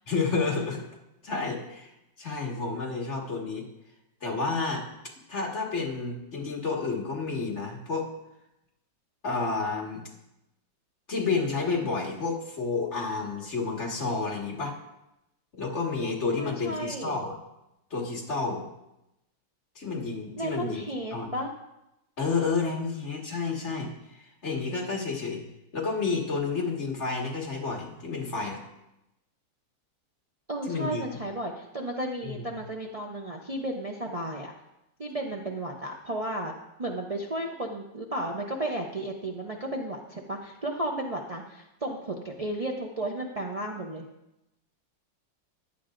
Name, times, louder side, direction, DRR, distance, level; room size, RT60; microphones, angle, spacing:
voice 1, 0.1-0.8 1.2-1.9 2.2-3.7 4.2-4.9 5.3-8.1 9.2-10.0 11.1-14.8 15.5-17.4 17.9-18.6 19.8-20.8 21.1-21.3 22.2-25.4 25.7-28.6 30.7-31.2 32.2-32.4, left 4 dB, 40° left, -1 dB, 2.1 m, -30 dB
voice 2, 16.4-17.2 20.4-21.5 30.5-34.5 35.0-36.5 36.8-44.0, right 1 dB, 70° right, -1 dB, 0.3 m, -33 dB
15.5 x 11.0 x 2.6 m, 0.90 s
omnidirectional pair, 2.0 m